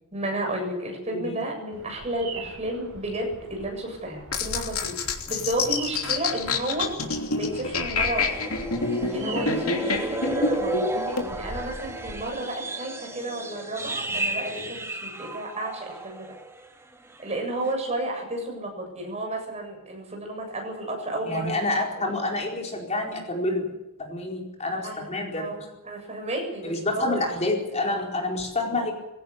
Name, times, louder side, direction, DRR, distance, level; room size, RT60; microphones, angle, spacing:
voice 1, 0.1-6.9 7.3-8.3 9.1-10.9 11.2-16.4 17.2-21.6 21.9-22.2 24.8-25.1 25.4-27.4, right 1 dB, 30° right, 2 dB, 7.6 m, -32 dB
Bird vocalization bird call bird song, 1.7-12.2, right 2 dB, 70° right, 5.3 m, -42 dB
sound 1, 4.3-11.3, left 4 dB, 75° left, 3.0 m, -28 dB
sound 2, 8.1-16.7 16.9-17.2 17.6-17.7, right 2 dB, 10° right, 1.8 m, -33 dB
voice 2, 21.3-23.7 24.0-25.5 26.6-28.9, left 2 dB, 30° left, 1 dB, 4.5 m, -28 dB
21.5 x 17.0 x 8.5 m, 0.97 s
head